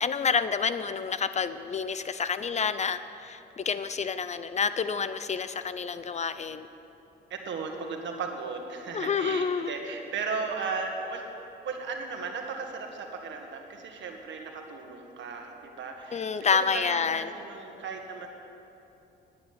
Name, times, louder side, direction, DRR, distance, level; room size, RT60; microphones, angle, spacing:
voice 1, 0.0-6.7 8.9-9.8 16.1-17.3, left 6 dB, 35° left, 13 dB, 0.5 m, -29 dB
voice 2, 7.3-11.2 11.6-18.3, right 4 dB, 70° right, 3 dB, 1.7 m, -36 dB
10.5 x 9.6 x 7.2 m, 2.8 s
cardioid pair, 90°, 20 cm